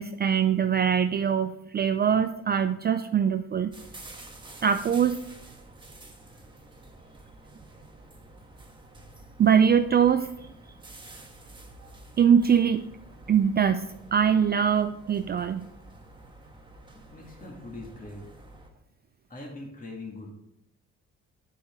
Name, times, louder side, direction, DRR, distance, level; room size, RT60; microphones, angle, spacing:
voice 1, 0.0-3.7 4.6-5.2 9.4-10.3 12.2-12.9 13.3-15.7, right 8 dB, 35° right, 10 dB, 0.4 m, -22 dB
sound 1, 3.7-18.7, right 2 dB, 15° right, 1.4 m, -49 dB
voice 2, 7.0-7.3 16.9-18.2 19.3-20.3, left 2 dB, 30° left, -1 dB, 1.9 m, -42 dB
8.3 x 7.8 x 3.6 m, 0.81 s
cardioid pair, 90°, 30 cm